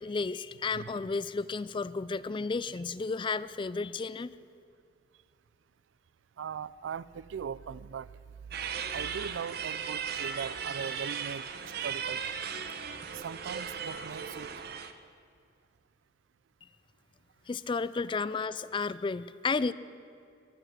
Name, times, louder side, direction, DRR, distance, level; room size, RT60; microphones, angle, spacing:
voice 1, 0.0-4.4 17.5-19.7, left 4 dB, 25° left, 17 dB, 0.3 m, -32 dB
voice 2, 6.4-8.2 8.8-12.4 13.1-14.5, right 7 dB, 85° right, 20 dB, 0.4 m, -40 dB
sound 1, 8.5-14.9, right 7 dB, 60° right, 0.8 m, -37 dB
22.0 x 8.0 x 7.4 m, 2.5 s
head